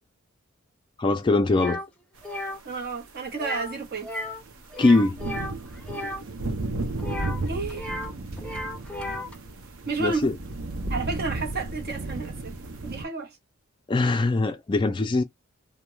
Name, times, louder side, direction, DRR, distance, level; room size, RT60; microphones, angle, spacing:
voice 1, 1.0-1.8 4.8-5.2 10.0-10.4 13.9-15.2, left 2 dB, 20° left, 0.3 m, -21 dB
sound 1, 1.5-1.9 2.2-2.6 3.4-3.8 4.0-4.4 4.7-6.2 7.0-8.1 8.4-9.3, left 1 dB, 5° left, 0.7 m, -34 dB
voice 2, 2.6-4.1 7.5-7.9 9.9-10.3 10.9-12.6 12.8-13.3, right 4 dB, 50° right, 0.9 m, -31 dB
sound 2, 2.7-2.8 3.3-13.1, right 2 dB, 75° right, 0.7 m, -34 dB
2.3 x 2.2 x 2.9 m
head